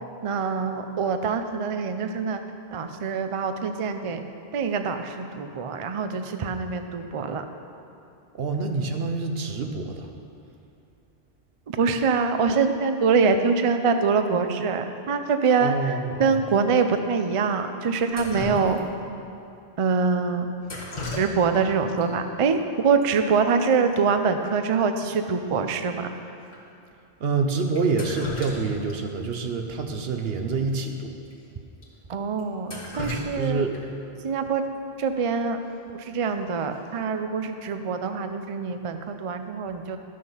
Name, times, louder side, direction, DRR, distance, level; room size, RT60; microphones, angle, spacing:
voice 1, 0.2-2.4 2.7-4.2 4.5-7.4 11.7-18.8 19.8-20.5 21.1-26.1 32.1-33.7 34.2-35.6 35.9-40.0, right 5 dB, 40° right, 7 dB, 0.5 m, -24 dB
voice 2, 8.3-10.1 15.6-16.4 27.2-31.2 33.4-33.8, right 4 dB, 70° right, 5 dB, 1.0 m, -27 dB
Drip, 18.1-19.1 20.6-21.7 22.0-22.1 23.0-23.1 23.4-23.6 23.9-24.0 24.5-24.6 25.0-25.1 25.7-25.8 26.5-26.6 27.7-29.0 29.3-29.4 30.7-30.8 31.3-31.4 31.8-31.9 32.4-34.0 36.0-36.3 36.7-37.1, left 2 dB, 45° left, 2.0 m, -35 dB
12.5 x 6.4 x 5.6 m, 2.6 s
omnidirectional pair, 1.1 m